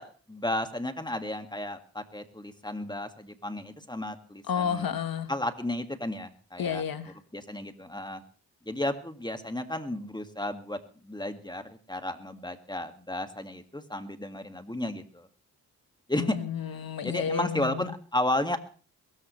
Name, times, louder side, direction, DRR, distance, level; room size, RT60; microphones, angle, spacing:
voice 1, 0.0-4.9 5.3-6.8 7.3-8.2 8.7-15.3 16.1-16.4 17.0-18.6, left 1 dB, 10° left, 7 dB, 2.1 m, -33 dB
voice 2, 4.5-5.3 6.6-7.1 16.2-17.9, left 7 dB, 65° left, 11 dB, 1.4 m, -31 dB
22.0 x 13.5 x 3.3 m, 0.40 s
cardioid pair, 50°, 38 cm